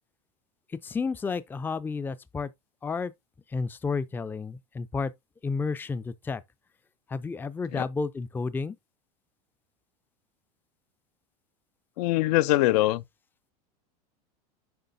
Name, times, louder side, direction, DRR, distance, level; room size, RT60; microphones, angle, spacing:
voice 1, 0.8-2.5 2.8-3.1 3.5-5.1 5.4-6.4 7.1-8.8, left 4 dB, 10° left, 0.4 m, -31 dB
voice 2, 12.0-13.0, left 16 dB, 65° left, 0.4 m, -23 dB
7.9 x 5.3 x 2.6 m
supercardioid pair, 110°, 21 cm